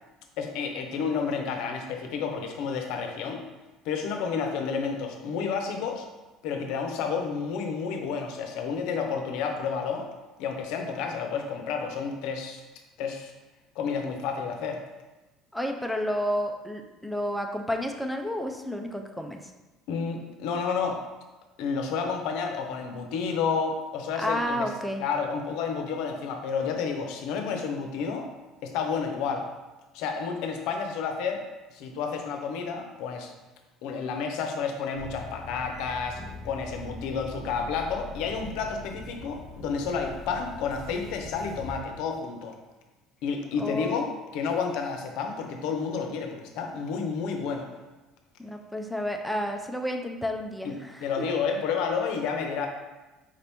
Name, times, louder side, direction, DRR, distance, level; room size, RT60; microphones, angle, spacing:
voice 1, 0.4-3.4 3.8-6.1 6.4-10.1 10.4-12.6 13.0-13.3 13.8-14.8 19.9-21.0 21.6-24.7 25.0-28.3 28.6-29.5 29.9-31.4 31.7-33.3 33.8-36.2 36.4-42.6 43.2-47.7 50.6-50.7 51.0-52.7, left 5 dB, 70° left, 4 dB, 0.6 m, -30 dB
voice 2, 15.5-19.4 24.2-25.0 43.6-44.1 48.4-51.2, equal, ahead, 3 dB, 0.3 m, -31 dB
sound 1, 34.9-41.8, left 1 dB, 40° right, 1.4 m, -42 dB
4.9 x 2.9 x 3.4 m, 1.1 s
cardioid pair, 160°, 0 cm